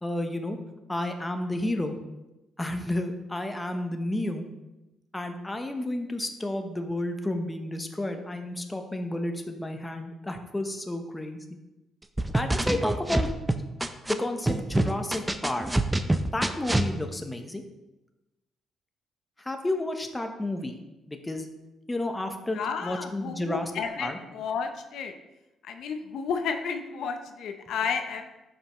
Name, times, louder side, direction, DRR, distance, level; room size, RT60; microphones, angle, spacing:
voice 1, 0.0-0.6 0.9-2.0 2.6-4.5 5.1-11.4 12.3-13.3 14.1-15.7 16.3-17.6 19.4-20.8 21.1-21.5 21.9-23.7 24.0-24.2, left 1 dB, 15° left, 5 dB, 0.9 m, -31 dB
sound 1, 12.2-14.1 14.5-16.9, right 1 dB, 10° right, 0.5 m, -25 dB
voice 2, 22.5-25.1 25.6-28.2, left 6 dB, 75° left, 7 dB, 0.7 m, -32 dB
9.5 x 5.6 x 3.1 m, 1.0 s
cardioid pair, 90°, 0 cm